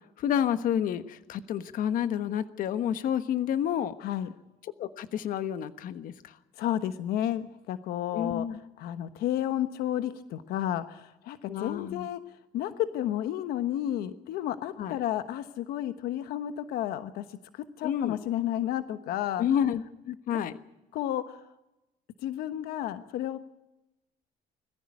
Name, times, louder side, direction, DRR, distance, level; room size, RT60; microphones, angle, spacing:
voice 1, 0.2-3.9 4.8-6.3 8.1-8.6 11.5-12.1 14.8-15.0 17.8-18.2 19.4-20.5, left 9 dB, 60° left, 11 dB, 1.3 m, -29 dB
voice 2, 6.6-8.4 8.8-12.2 12.5-19.4 20.3-20.4 20.9-21.4 22.2-23.4, left 12 dB, 80° left, 10 dB, 1.2 m, -32 dB
21.5 x 15.0 x 9.8 m, 0.95 s
cardioid pair, 140°, 16 cm